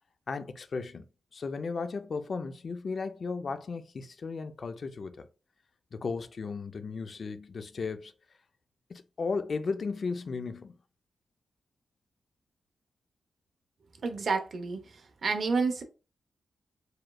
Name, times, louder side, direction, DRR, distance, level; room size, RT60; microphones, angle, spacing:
voice 1, 0.3-1.1 1.3-5.3 5.9-8.1 8.9-10.7, left 4 dB, 45° left, 0.4 m, -35 dB
voice 2, 14.0-14.8 15.2-15.8, right 4 dB, 50° right, 0.7 m, -29 dB
4.8 x 3.1 x 2.3 m
wide cardioid pair, 140°, 0 cm